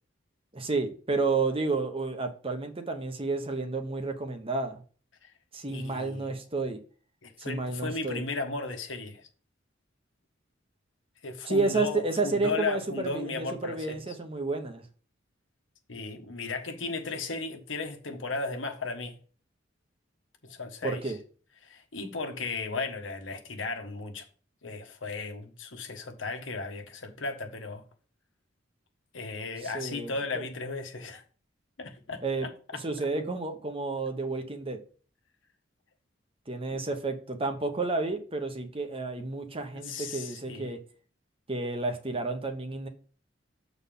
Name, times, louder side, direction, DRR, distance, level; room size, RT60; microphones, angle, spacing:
voice 1, 0.5-4.8 5.5-6.8 7.4-8.2 11.4-14.9 20.8-21.2 29.6-30.5 32.2-32.5 32.8-34.8 36.5-40.8 41.5-42.9, right 3 dB, 30° right, 0.9 m, -31 dB
voice 2, 5.6-6.4 7.2-9.3 11.2-14.0 15.9-19.1 20.4-21.1 21.6-24.3 24.6-27.8 29.1-31.2 31.8-32.5 39.7-40.7, left 3 dB, 90° left, 1.3 m, -35 dB
7.0 x 4.1 x 5.4 m
head